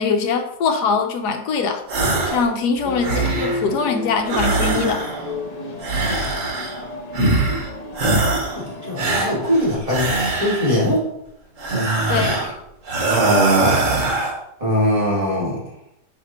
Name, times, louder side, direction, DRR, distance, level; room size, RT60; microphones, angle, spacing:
voice 1, 0.0-1.8 2.3-5.1 12.1-12.5, left 5 dB, 80° left, 5 dB, 1.3 m, -22 dB
sound 1, 1.9-2.5 2.8-3.7 4.3-5.3 5.8-6.8 7.1-7.7 8.0-8.6 9.0-10.8 11.6-12.5 12.9-14.4, right 2 dB, 55° right, 1.4 m, -21 dB
sound 2, 2.8-9.7, left 2 dB, 45° left, 0.5 m, -32 dB
voice 2, 8.6-11.0 14.6-15.6, left 1 dB, 20° right, -6 dB, 2.0 m, -21 dB
8.7 x 3.0 x 4.2 m, 0.79 s
omnidirectional pair, 1.7 m